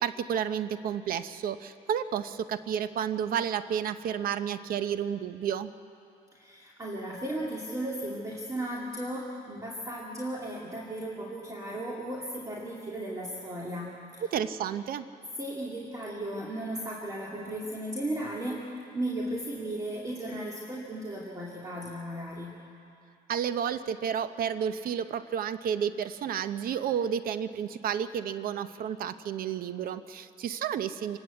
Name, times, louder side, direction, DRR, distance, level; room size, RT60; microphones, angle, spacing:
voice 1, 0.0-5.7 14.3-15.1 23.3-31.2, right 8 dB, 60° right, 12 dB, 0.7 m, -31 dB
voice 2, 6.3-14.3 15.4-18.7 18.9-22.6, right 1 dB, 20° right, -3 dB, 2.3 m, -35 dB
26.5 x 12.5 x 8.3 m, 2.6 s
cardioid pair, 110°, 17 cm